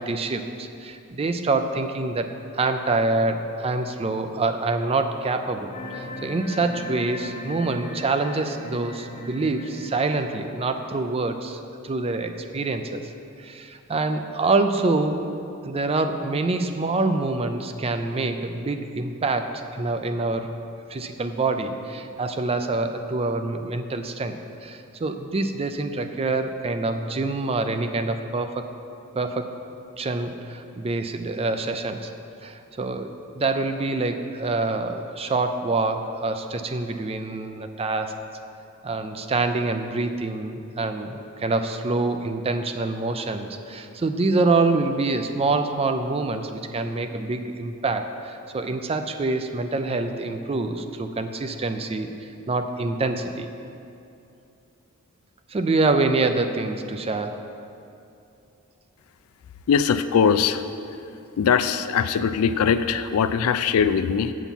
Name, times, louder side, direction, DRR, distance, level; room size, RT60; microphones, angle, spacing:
voice 1, 0.0-2.3 2.5-13.0 13.4-15.2 15.6-20.5 20.9-28.6 29.1-29.5 30.0-32.1 32.4-38.1 38.8-52.1 52.5-53.5 55.5-57.4, right 3 dB, 25° right, 7 dB, 0.4 m, -26 dB
sound 1, 5.7-10.8, left 1 dB, 25° left, 2.2 m, -38 dB
voice 2, 59.7-60.7 61.4-64.3, left 7 dB, 70° left, 12 dB, 0.4 m, -21 dB
7.2 x 5.8 x 7.1 m, 2.6 s
head